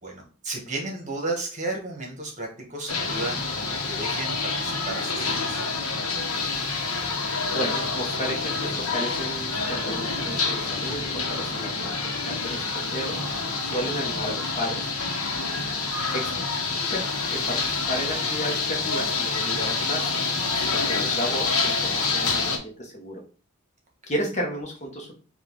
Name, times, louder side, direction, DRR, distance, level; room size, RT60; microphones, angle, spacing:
voice 1, 0.0-5.6 15.2-15.5, right 2 dB, 35° right, 0 dB, 1.2 m, -34 dB
sound 1, 2.9-22.6, left 4 dB, 70° left, 1.0 m, -27 dB
voice 2, 7.5-12.1 12.4-13.2 13.6-14.9 16.1-16.5 16.9-17.0 17.3-20.1 20.5-23.2 24.1-25.1, equal, 30° left, 0 dB, 1.0 m, -33 dB
5.1 x 2.4 x 3.8 m, 0.38 s
head